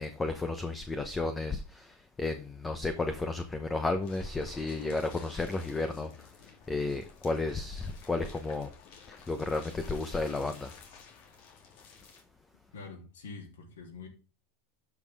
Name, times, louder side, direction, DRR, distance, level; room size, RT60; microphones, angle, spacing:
voice 1, 0.0-8.7 9.1-10.7, left 3 dB, 15° left, 0.9 m, -33 dB
sound 1, 4.0-12.2, left 6 dB, 65° left, 2.9 m, -53 dB
voice 2, 12.7-14.1, left 4 dB, 90° left, 3.1 m, -45 dB
12.0 x 5.6 x 3.6 m
supercardioid pair, 110°, 0 cm